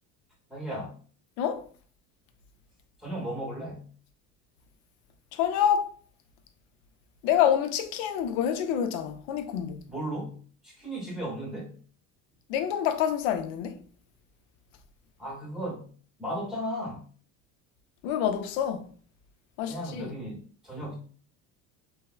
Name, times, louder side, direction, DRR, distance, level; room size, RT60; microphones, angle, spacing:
voice 1, 0.5-0.9 3.0-3.9 9.9-10.4 10.6-11.7 15.2-15.9 16.2-17.0 19.7-20.9, equal, ahead, 0.8 m, -35 dB
voice 2, 1.4-1.7 5.3-5.9 7.2-9.9 12.5-13.8 18.0-18.9 19.6-20.1, left 9 dB, 85° left, 0.5 m, -27 dB
3.3 x 2.0 x 2.3 m
cardioid pair, 160°, 34 cm